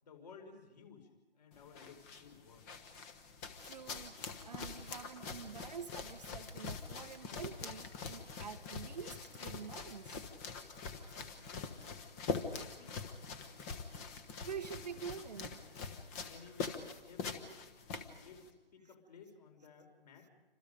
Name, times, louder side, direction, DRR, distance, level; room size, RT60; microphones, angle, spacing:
voice 1, 0.0-1.1 1.3-2.7 11.4-13.2 16.3-17.6 18.2-20.3, left 5 dB, 45° left, 3 dB, 5.1 m, -57 dB
sound 1, 1.5-18.5, left 5 dB, 15° left, 1.2 m, -44 dB
voice 2, 3.4-4.2 4.4-10.2 10.9-11.3 14.4-15.6, right 7 dB, 45° right, 10 dB, 0.8 m, -47 dB
28.5 x 26.0 x 5.2 m, 1.0 s
figure-of-eight pair, 145°, 30 cm